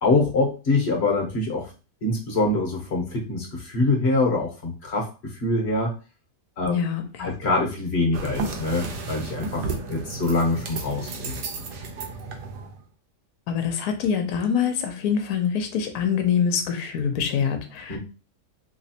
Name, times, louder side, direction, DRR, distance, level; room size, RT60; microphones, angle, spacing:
voice 1, 0.0-1.7 2.0-5.9 6.6-6.8 7.2-11.4 17.9-18.0, left 2 dB, 45° left, 0 dB, 1.0 m, -24 dB
voice 2, 6.6-7.3 13.5-18.0, left 7 dB, 70° left, 6 dB, 1.1 m, -25 dB
sound 1, 8.1-12.8, right 4 dB, 80° right, 1.3 m, -33 dB
3.2 x 3.0 x 2.8 m, 0.32 s
omnidirectional pair, 1.8 m